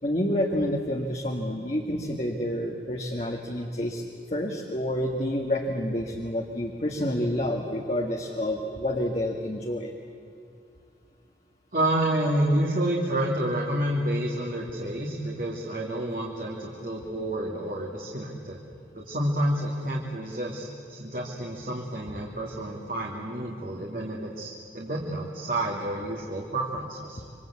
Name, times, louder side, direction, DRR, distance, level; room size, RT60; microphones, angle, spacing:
voice 1, 0.0-4.0 4.3-9.9, left 1 dB, 35° left, 1 dB, 1.7 m, -28 dB
voice 2, 11.7-18.6 18.9-27.2, right 1 dB, 50° right, -2 dB, 2.3 m, -29 dB
27.0 x 24.5 x 8.4 m, 2.4 s
head